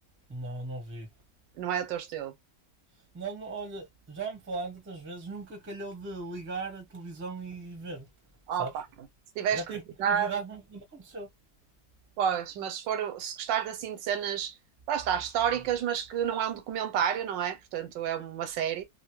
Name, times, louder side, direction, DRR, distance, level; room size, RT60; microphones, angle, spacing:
voice 1, 0.3-1.1 3.1-8.1 8.6-8.7 9.5-11.3, right 3 dB, 10° right, 0.6 m, -38 dB
voice 2, 1.6-2.3 8.5-8.7 9.4-10.3 12.2-14.5 14.9-18.8, right 9 dB, 85° right, 1.3 m, -30 dB
2.8 x 2.6 x 3.0 m
omnidirectional pair, 1.9 m